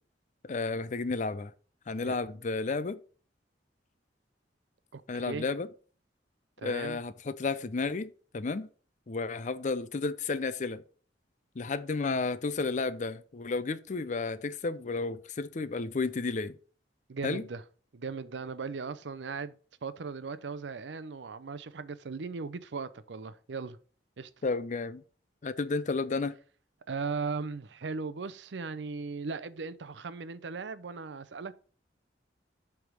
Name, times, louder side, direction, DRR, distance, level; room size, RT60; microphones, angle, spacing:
voice 1, 0.5-1.5 1.9-3.0 5.1-5.7 6.6-8.7 9.1-10.8 11.6-16.6 17.2-17.5 24.4-25.0 25.4-26.3, left 3 dB, 45° left, 0.5 m, -32 dB
voice 2, 4.9-5.5 6.6-7.0 17.1-17.6 17.9-19.5 19.8-23.8 24.2-24.3 26.9-31.6, right 4 dB, 80° right, 0.6 m, -38 dB
7.8 x 3.6 x 6.3 m
head